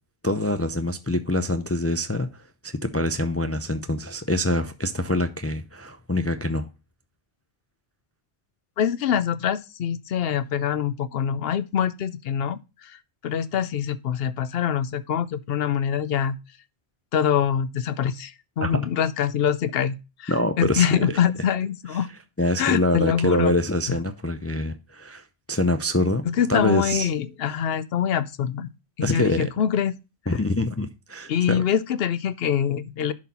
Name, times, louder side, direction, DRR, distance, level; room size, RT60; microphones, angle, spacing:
voice 1, 0.2-6.7 18.6-18.9 20.3-21.0 22.4-26.2 26.5-27.1 27.5-27.6 29.0-29.5 30.3-31.6, left 1 dB, 25° left, 0.3 m, -25 dB
voice 2, 8.8-13.0 13.2-16.4 17.1-22.1 22.6-23.5 23.9-24.0 26.2-28.7 29.0-30.0 31.3-33.1, left 8 dB, 65° left, 0.8 m, -24 dB
11.0 x 4.2 x 4.1 m
omnidirectional pair, 1.1 m